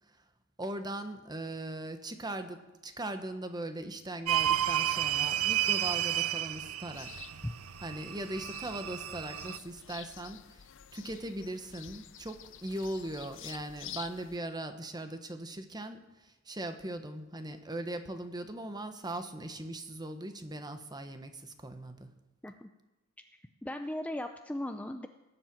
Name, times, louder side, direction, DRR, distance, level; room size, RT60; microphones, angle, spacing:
voice 1, 0.6-7.1 7.8-10.7 10.9-22.1, right 1 dB, 20° right, 8 dB, 1.2 m, -39 dB
sound 1, 4.3-9.6, right 11 dB, 80° right, 0.6 m, -31 dB
sound 2, 6.9-14.4, left 11 dB, 60° left, 0.6 m, -49 dB
voice 2, 23.3-25.1, left 1 dB, 5° left, 7 dB, 0.5 m, -38 dB
19.0 x 7.6 x 8.8 m, 1.1 s
head